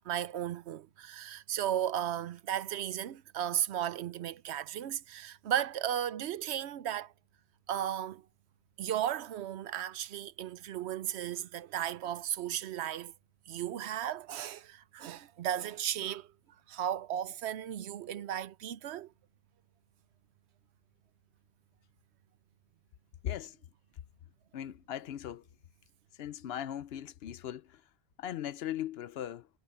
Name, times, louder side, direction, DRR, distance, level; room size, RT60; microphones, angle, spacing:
voice 1, 0.1-7.1 7.7-8.2 8.8-13.1 13.5-16.3 16.7-19.1, right 10 dB, 85° right, 0.9 m, -35 dB
voice 2, 23.2-23.6 24.5-25.5 26.1-27.8 28.2-29.5, left 11 dB, 70° left, 0.8 m, -39 dB
omnidirectional pair, 1.1 m